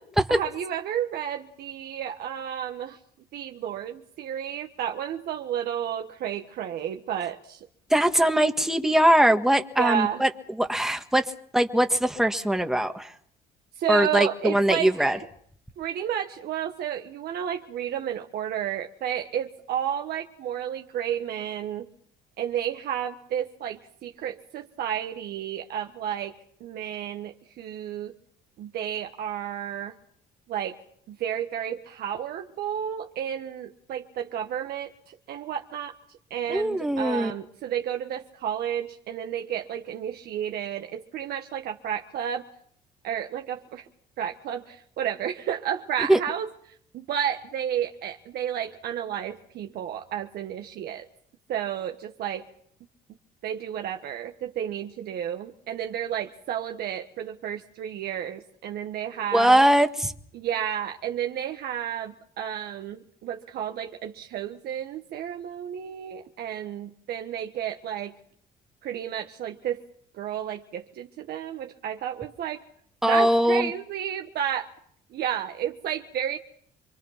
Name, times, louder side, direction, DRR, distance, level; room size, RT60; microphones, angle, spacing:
voice 1, 0.3-3.0 3.3-7.6 9.8-10.2 13.8-15.3 15.8-21.9 22.4-28.1 28.6-29.9 30.5-30.8 31.1-35.9 36.3-42.5 43.0-43.8 44.2-46.5 46.9-51.1 51.5-52.5 53.4-59.6 60.3-68.2 68.8-69.8 70.1-72.6 73.1-74.7 75.1-76.4, right 9 dB, 70° right, 4 dB, 1.4 m, -32 dB
voice 2, 7.9-10.3 10.6-11.2 11.5-13.1 13.9-15.2 36.5-37.3 46.1-46.2 59.3-60.1 73.0-73.7, right 1 dB, ahead, 6 dB, 1.8 m, -21 dB
27.0 x 23.0 x 5.8 m, 0.63 s
cardioid pair, 110°, 17 cm